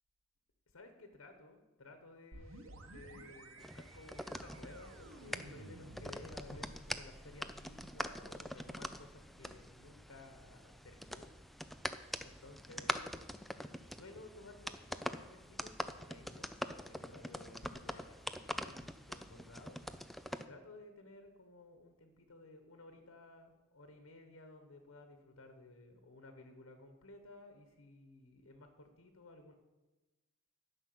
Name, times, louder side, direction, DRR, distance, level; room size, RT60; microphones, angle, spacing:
voice 1, 0.7-11.3 12.2-13.2 13.8-19.8 20.5-29.5, left 2 dB, 90° left, 6 dB, 1.2 m, -56 dB
sound 1, 2.3-11.9, right 1 dB, 75° right, 1.1 m, -56 dB
sound 2, 3.6-20.4, equal, ahead, 0.4 m, -44 dB
11.0 x 5.8 x 7.7 m, 1.1 s
head